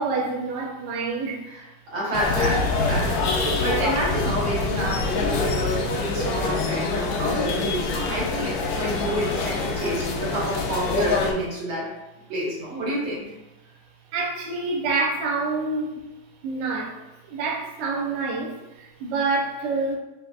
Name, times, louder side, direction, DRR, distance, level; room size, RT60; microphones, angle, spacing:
voice 1, 0.0-1.4 14.1-16.0 16.4-20.0, right 3 dB, 70° right, -2 dB, 1.2 m, -27 dB
voice 2, 1.5-11.9 12.3-13.3, right 1 dB, 90° right, -6 dB, 2.2 m, -29 dB
sound 1, 2.1-11.3, left 3 dB, 75° left, 0.8 m, -25 dB
5.8 x 2.8 x 2.4 m, 1.0 s
omnidirectional pair, 2.2 m